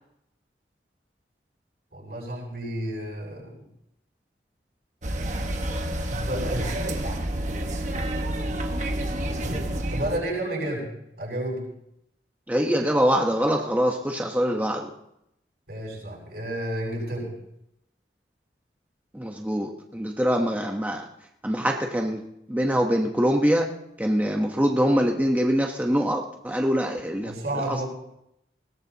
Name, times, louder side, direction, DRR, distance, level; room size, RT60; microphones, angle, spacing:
voice 1, 1.9-3.6 6.1-6.7 9.4-9.6 9.9-10.9 11.2-11.6 15.7-17.3 27.2-27.8, right 1 dB, 60° right, -3 dB, 7.7 m, -31 dB
sound 1, 5.0-10.2, right 1 dB, 45° right, 1.3 m, -29 dB
voice 2, 12.5-14.9 19.1-21.0 21.4-23.7 24.0-27.3 27.7-27.8, equal, 10° right, 1 dB, 1.0 m, -24 dB
20.5 x 18.0 x 2.9 m, 0.78 s
head